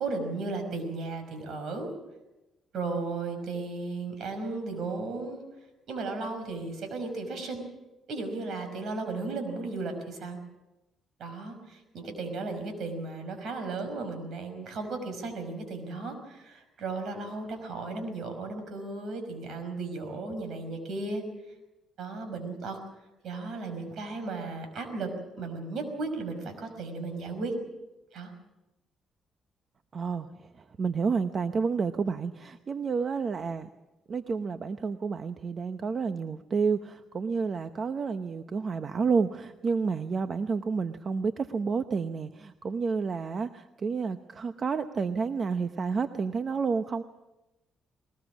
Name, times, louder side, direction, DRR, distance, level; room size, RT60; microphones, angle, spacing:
voice 1, 0.0-1.9 2.7-5.4 5.9-7.6 8.1-10.4 11.2-21.2 22.0-22.8 23.2-25.1 25.4-27.5 28.1-28.3, right 3 dB, 70° right, 7 dB, 5.6 m, -35 dB
voice 2, 29.9-33.7 34.1-47.0, right 5 dB, 45° right, 10 dB, 0.9 m, -30 dB
21.0 x 20.0 x 7.3 m, 1.0 s
cardioid pair, 90°, 0 cm